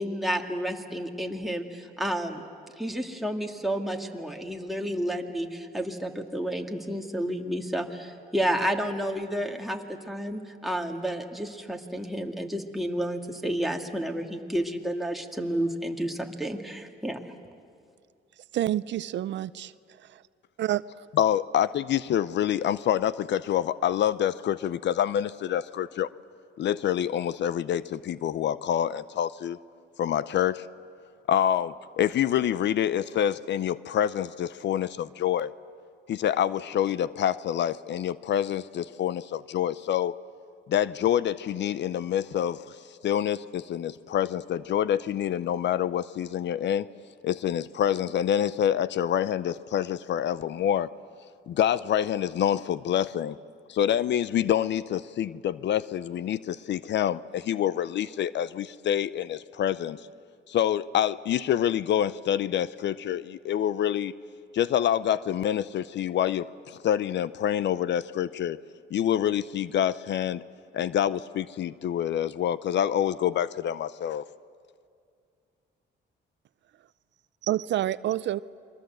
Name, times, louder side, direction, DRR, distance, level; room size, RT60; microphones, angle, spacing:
voice 1, 0.0-2.4 2.8-17.2, equal, ahead, 2 dB, 2.3 m, -31 dB
voice 2, 18.5-19.7 20.1-20.2 20.6-20.8 77.5-78.4, right 13 dB, 65° right, 17 dB, 0.5 m, -28 dB
voice 3, 21.2-26.1 26.6-29.6 30.0-30.6 31.3-35.5 36.1-40.1 40.7-42.8 43.0-46.9 47.2-50.9 51.5-53.4 53.7-60.0 60.5-64.1 64.5-68.6 68.9-70.4 70.7-74.2, left 10 dB, 65° left, 17 dB, 0.6 m, -27 dB
28.5 x 22.5 x 7.9 m, 2.3 s
cardioid pair, 90°, 20 cm